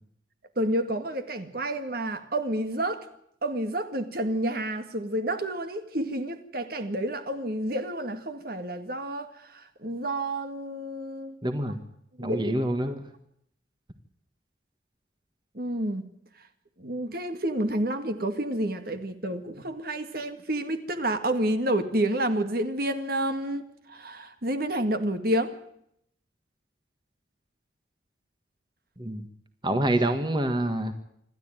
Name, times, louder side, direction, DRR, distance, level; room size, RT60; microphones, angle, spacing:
voice 1, 0.6-3.1 3.4-11.4 12.2-12.5 15.5-16.1 16.8-25.5 29.7-29.8, right 1 dB, 50° right, 9 dB, 1.9 m, -29 dB
voice 2, 11.4-11.8 12.2-13.0 29.0-29.2 29.6-30.9, right 1 dB, 25° right, 8 dB, 1.6 m, -26 dB
26.5 x 13.0 x 9.1 m, 0.74 s
head